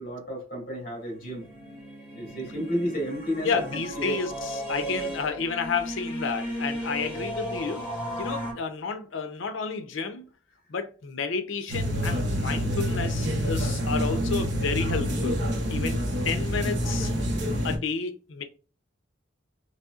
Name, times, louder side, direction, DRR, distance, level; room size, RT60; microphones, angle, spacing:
voice 1, 0.0-1.5 2.2-4.2, equal, 50° left, 2.0 m, -32 dB
sound 1, 1.3-8.5, equal, 10° right, 1.4 m, -35 dB
voice 2, 3.4-7.8 8.2-10.3 10.7-15.4 15.7-17.1 17.6-18.4, left 5 dB, 85° left, 0.6 m, -31 dB
sound 2, 11.7-17.8, equal, 60° right, 0.8 m, -27 dB
4.1 x 3.4 x 2.4 m
head